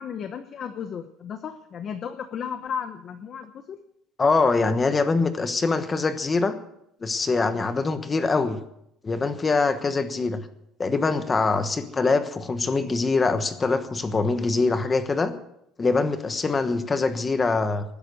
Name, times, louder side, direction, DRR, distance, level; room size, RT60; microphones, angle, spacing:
voice 1, 0.0-3.8, left 7 dB, 35° left, 8 dB, 0.9 m, -34 dB
voice 2, 4.2-6.5 7.0-8.6 9.0-10.4 10.8-15.3 15.8-17.8, left 3 dB, 15° left, 10 dB, 1.2 m, -23 dB
19.5 x 10.0 x 6.4 m, 0.76 s
cardioid pair, 175°, 0 cm